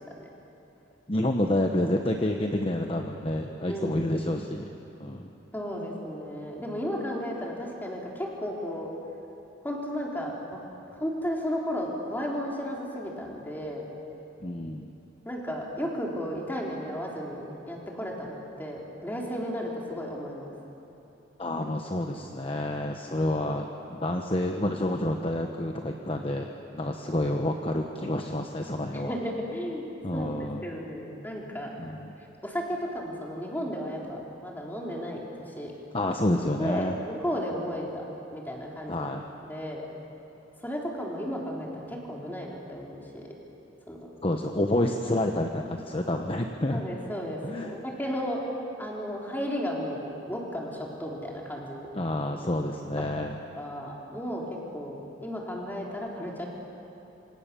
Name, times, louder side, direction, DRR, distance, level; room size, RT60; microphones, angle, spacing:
voice 1, 1.1-4.7 5.0-5.3 14.4-14.9 21.4-29.1 30.0-30.7 31.8-32.1 35.9-37.0 38.9-39.2 44.2-46.8 47.4-47.7 51.9-53.4, left 1 dB, 30° left, 3 dB, 1.1 m, -29 dB
voice 2, 3.7-4.0 5.5-8.9 9.6-10.6 11.0-13.8 15.3-20.5 28.9-30.3 30.6-31.7 32.4-35.7 36.6-38.0 38.3-39.1 39.4-39.8 40.6-43.2 43.9-44.0 46.7-48.4 48.8-51.9 53.2-56.5, equal, 10° left, -2 dB, 3.8 m, -34 dB
27.0 x 25.5 x 7.0 m, 2.9 s
head